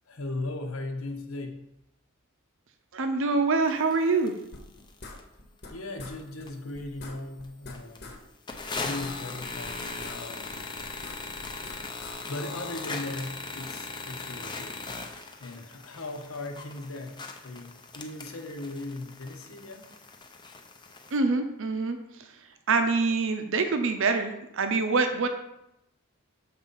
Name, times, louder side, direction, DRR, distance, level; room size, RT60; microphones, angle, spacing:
voice 1, 0.1-1.6 5.7-8.1 8.8-10.8 12.3-14.8 15.4-17.2 17.4-19.9, left 2 dB, 75° left, 3 dB, 1.1 m, -38 dB
voice 2, 2.9-4.4 21.1-22.0 22.7-25.3, right 4 dB, 65° right, 7 dB, 0.7 m, -25 dB
sound 1, 3.9-4.0 4.3-4.4 4.8-5.2 5.7-5.8 6.1-6.7 7.0-7.1 7.4-7.5 7.7-8.0 8.5-21.2, left 3 dB, 20° left, 0.7 m, -39 dB
sound 2, 4.5-5.7 6.0-6.2 6.4-6.5 6.7-8.2 8.5-10.2 10.4-12.2, left 2 dB, 55° left, 1.2 m, -45 dB
6.8 x 4.0 x 5.5 m, 0.84 s
head